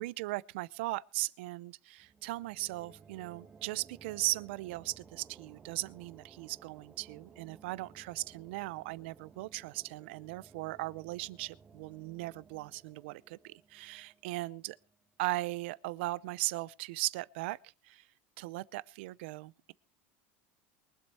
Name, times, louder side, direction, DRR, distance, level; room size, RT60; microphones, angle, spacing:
voice 1, 0.0-14.8 15.2-17.6 17.8-18.0 18.4-19.7, right 19 dB, 80° right, 0.6 m, -38 dB
sound 1, 2.0-15.4, right 5 dB, 20° right, 1.7 m, -58 dB
23.0 x 8.0 x 4.2 m
cardioid pair, 160°, 6 cm